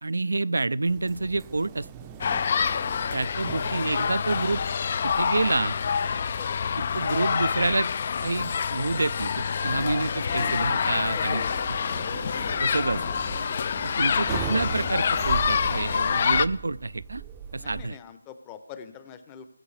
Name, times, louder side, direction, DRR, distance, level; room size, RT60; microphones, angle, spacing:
voice 1, 0.0-1.9 3.1-4.6 5.0-5.8 6.9-7.9 8.2-11.4 12.1-12.2 12.6-13.0 13.8-17.2 17.5-18.0, right 3 dB, 75° right, 19 dB, 0.3 m, -28 dB
sound 1, 0.8-17.8, right 8 dB, 15° right, 0.5 m, -40 dB
sound 2, 2.2-16.5, left 6 dB, 40° left, 0.4 m, -27 dB
voice 2, 6.4-6.7 10.8-11.5 14.0-14.1 17.6-19.5, left 8 dB, 20° left, 11 dB, 0.8 m, -44 dB
20.5 x 7.7 x 3.3 m, 0.78 s
figure-of-eight pair, 155°, 0 cm